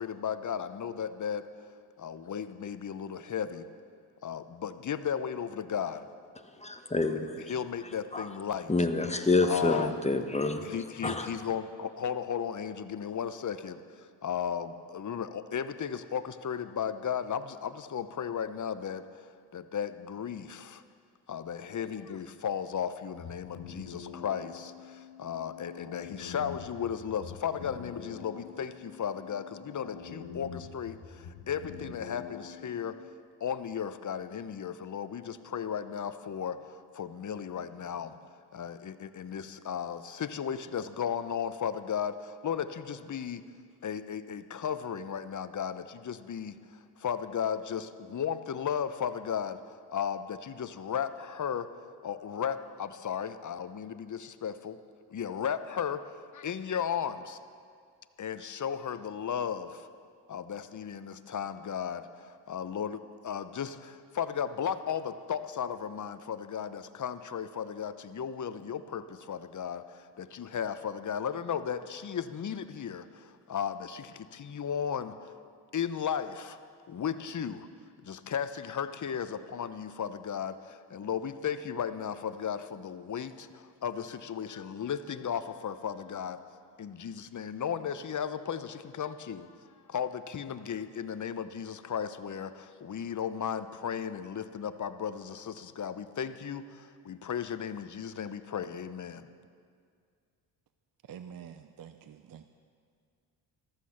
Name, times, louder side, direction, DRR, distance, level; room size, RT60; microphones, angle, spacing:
voice 1, 0.0-1.4 2.0-3.7 4.2-6.1 7.2-8.9 9.4-10.0 10.6-13.8 14.2-19.3 19.5-20.8 21.3-33.0 33.4-38.1 38.5-43.4 43.8-46.6 47.0-49.6 49.9-51.7 52.0-54.8 55.1-56.0 56.3-57.4 58.2-59.9 60.3-75.2 75.7-76.6 76.9-77.7 78.0-86.4 86.8-89.5 89.9-99.3, left 8 dB, 40° left, 12 dB, 0.9 m, -35 dB
voice 2, 6.6-7.2 8.1-8.3 8.7-10.7 11.0-11.3, left 3 dB, 15° left, 6 dB, 1.4 m, -27 dB
sound 1, 23.1-33.1, left 7 dB, 60° left, 1.3 m, -46 dB
voice 3, 101.1-102.5, right 8 dB, 45° right, 9 dB, 0.7 m, -47 dB
14.5 x 13.0 x 5.8 m, 2.1 s
hypercardioid pair, 50°, 47 cm